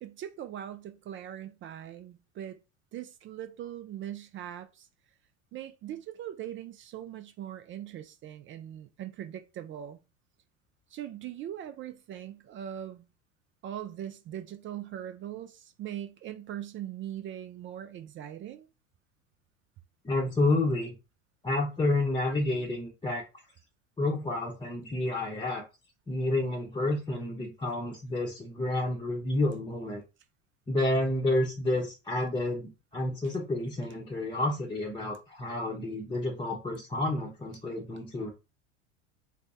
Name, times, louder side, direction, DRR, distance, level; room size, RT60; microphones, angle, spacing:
voice 1, 0.0-2.6 2.9-4.9 5.5-10.0 10.9-13.0 13.6-18.7 33.2-33.3, right 11 dB, 35° right, 0.5 m, -41 dB
voice 2, 20.0-20.9 21.4-23.2 24.0-25.6 26.1-30.0 30.7-38.3, left 2 dB, 15° left, 0.8 m, -30 dB
3.4 x 2.2 x 4.0 m
hypercardioid pair, 85°, 35 cm